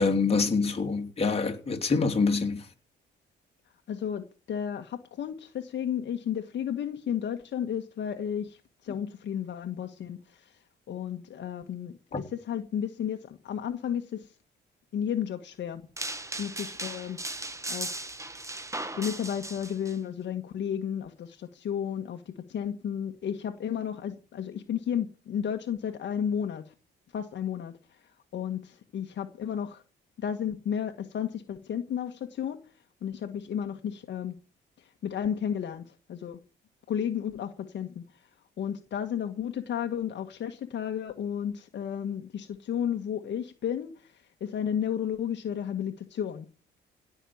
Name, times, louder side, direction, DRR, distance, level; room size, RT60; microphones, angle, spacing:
voice 1, 0.0-2.6 12.1-12.2, left 4 dB, 30° left, 3.1 m, -26 dB
voice 2, 3.9-10.6 10.9-14.3 14.9-15.8 16.4-17.2 17.7-18.1 18.4-18.5 18.9-26.7 27.1-29.8 30.2-32.6 33.0-34.4 34.8-36.4 36.9-38.3 38.6-46.5, left 8 dB, 65° left, 1.6 m, -33 dB
Stones down Toyon Steps, 16.0-20.0, right 2 dB, 15° right, 1.6 m, -37 dB
17.0 x 6.4 x 8.8 m
cardioid pair, 90°, 20 cm